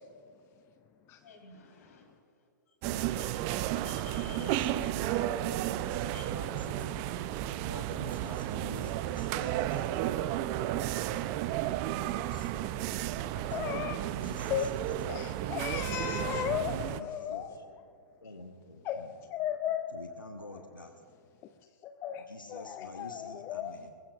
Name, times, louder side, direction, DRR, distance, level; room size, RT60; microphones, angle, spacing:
voice 1, 1.2-2.8 3.2-3.5 3.8-4.8 6.1-6.3, left 6 dB, 50° left, 2 dB, 3.8 m, -53 dB
sound 1, 2.8-17.0, right 13 dB, 30° right, 0.5 m, -33 dB
voice 2, 4.4-5.4 6.2-7.0 7.6-10.2 12.2-12.5 13.2-13.7 14.1-15.3 16.3-17.6 18.2-19.1 19.9-20.9 22.3-23.9, left 2 dB, 80° left, 4 dB, 1.2 m, -47 dB
voice 3, 13.5-14.0 14.5-14.7 15.1-17.5 18.8-20.0 21.8-23.8, left 10 dB, 25° left, 9 dB, 0.5 m, -35 dB
22.5 x 20.5 x 2.5 m, 2.4 s
figure-of-eight pair, 110°, 11 cm